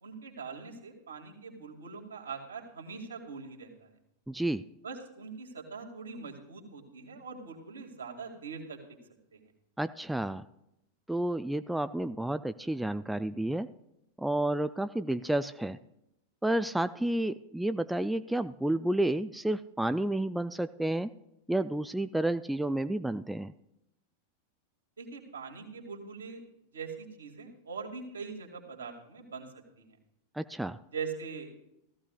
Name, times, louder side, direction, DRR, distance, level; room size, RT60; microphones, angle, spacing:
voice 1, 0.0-3.9 4.8-8.8 9.3-9.4 25.0-26.4 26.7-29.5 29.8-29.9 30.9-31.5, right 5 dB, 70° right, 1 dB, 2.2 m, -42 dB
voice 2, 4.3-4.6 9.8-10.4 11.1-13.7 14.2-15.8 16.4-21.1 21.5-23.5 30.3-30.8, right 1 dB, 5° right, 11 dB, 0.4 m, -30 dB
17.5 x 14.5 x 2.4 m, 0.83 s
figure-of-eight pair, 90°, 0 cm